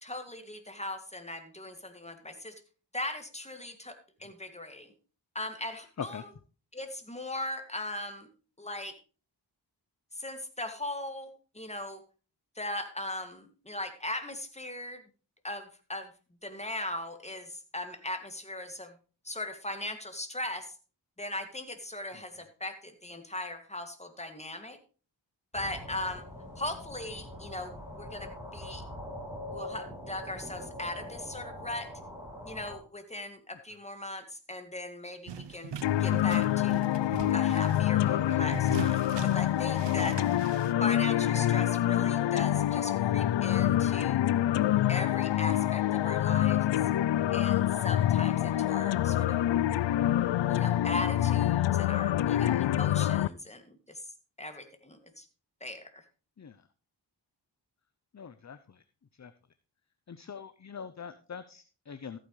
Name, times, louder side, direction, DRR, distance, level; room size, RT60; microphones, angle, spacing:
voice 1, 0.0-2.5 2.9-4.9 5.3-6.2 6.7-8.3 8.6-8.9 10.1-12.0 12.6-15.0 15.4-16.1 16.4-18.9 19.2-20.8 21.2-24.8 25.5-26.2 26.6-28.8 29.5-31.9 32.4-36.9 37.3-40.2 40.8-44.2 44.9-46.7 47.3-49.4 50.5-54.1 54.4-55.3 55.6-55.9, left 1 dB, 15° left, 7 dB, 2.3 m, -39 dB
sound 1, 25.5-32.8, left 1 dB, 5° right, 6.5 m, -43 dB
sound 2, 35.3-40.7, right 8 dB, 65° right, 0.8 m, -42 dB
sound 3, 35.8-53.3, left 12 dB, 70° left, 0.5 m, -26 dB
voice 2, 58.1-58.8 59.2-59.3 60.1-62.2, left 6 dB, 35° left, 13 dB, 0.8 m, -42 dB
14.5 x 9.2 x 3.2 m, 0.36 s
cardioid pair, 60°, 46 cm